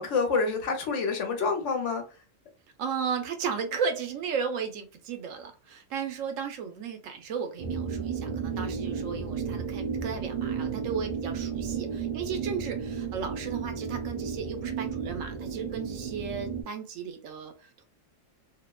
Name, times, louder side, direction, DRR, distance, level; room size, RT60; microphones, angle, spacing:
voice 1, 0.0-2.0 8.5-8.7, left 4 dB, 70° left, 1.0 m, -28 dB
voice 2, 2.8-17.9, right 6 dB, 85° right, 1.0 m, -35 dB
sound 1, 7.6-16.6, right 6 dB, 70° right, 0.4 m, -33 dB
2.7 x 2.1 x 2.2 m
omnidirectional pair, 1.3 m